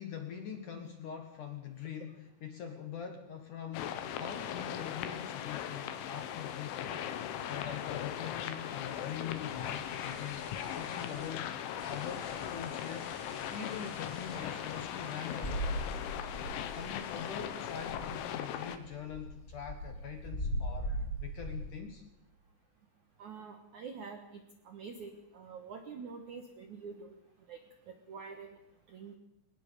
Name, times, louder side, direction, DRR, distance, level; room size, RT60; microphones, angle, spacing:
voice 1, 0.0-7.1 7.5-13.2 13.5-15.6 16.7-21.0 21.2-22.0, left 8 dB, 60° left, 6 dB, 2.2 m, -43 dB
sound 1, 3.7-18.8, left 10 dB, 80° left, 3.7 m, -39 dB
sound 2, 9.2-11.3 11.8-18.3 18.6-19.2, right 1 dB, 20° right, 5.7 m, -55 dB
sound 3, 15.4-17.0 17.3-17.4 17.7-18.2 18.7-21.7, equal, 15° left, 4.4 m, -38 dB
voice 2, 23.2-27.2 27.5-27.6 27.9-28.5 28.9-29.1, right 5 dB, 65° right, 5 dB, 1.9 m, -46 dB
21.0 x 19.5 x 6.8 m, 0.84 s
omnidirectional pair, 5.5 m